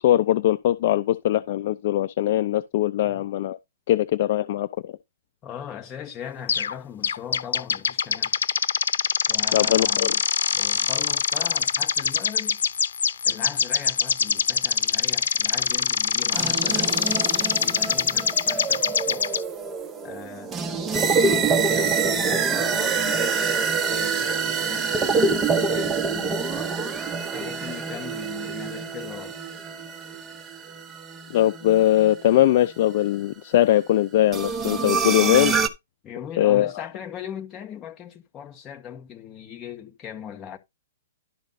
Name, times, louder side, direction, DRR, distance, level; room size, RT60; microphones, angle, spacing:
voice 1, 0.0-3.6 3.9-4.9 9.5-10.1 31.3-35.5 36.4-36.7, left 13 dB, 40° left, 0.5 m, -21 dB
voice 2, 5.4-8.3 9.3-10.2 10.5-12.6 13.2-19.3 20.0-26.8 27.3-29.4 36.0-40.6, left 9 dB, 15° left, 1.2 m, -39 dB
sound 1, 6.5-6.8 7.0-19.4, left 7 dB, 80° left, 0.8 m, -24 dB
sound 2, 16.3-32.4 34.3-35.7, right 5 dB, 10° right, 0.8 m, -26 dB
12.0 x 5.0 x 4.2 m
hypercardioid pair, 170°, 0 cm